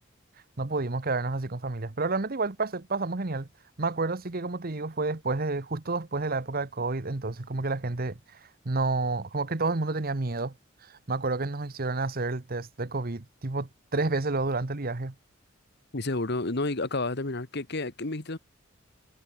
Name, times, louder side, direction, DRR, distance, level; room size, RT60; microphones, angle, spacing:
voice 1, 0.6-3.5 3.8-10.5 10.8-15.1, right 3 dB, 45° right, 1.1 m, -30 dB
voice 2, 15.9-18.4, left 2 dB, 55° left, 1.7 m, -30 dB
head